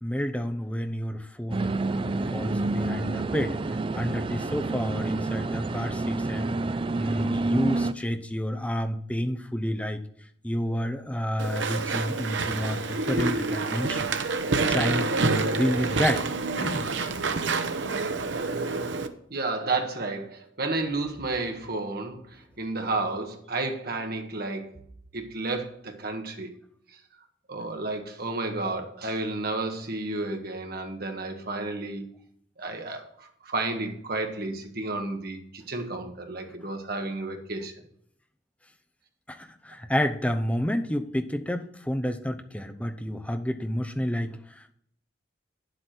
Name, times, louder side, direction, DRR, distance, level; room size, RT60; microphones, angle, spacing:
voice 1, 0.0-3.6 3.9-10.0 10.4-14.2 14.7-16.3 16.6-16.9 39.3-44.7, equal, 5° left, 6 dB, 0.7 m, -30 dB
sound 1, 1.5-7.9, right 2 dB, 30° right, 0.4 m, -28 dB
Walk footsteps / Chatter / Squeak, 11.4-19.1, right 3 dB, 75° right, 0.9 m, -27 dB
voice 2, 19.3-24.7 25.1-26.5 27.5-32.1 32.6-37.7, right 2 dB, 55° right, 4 dB, 1.6 m, -31 dB
9.8 x 7.8 x 4.4 m, 0.69 s
head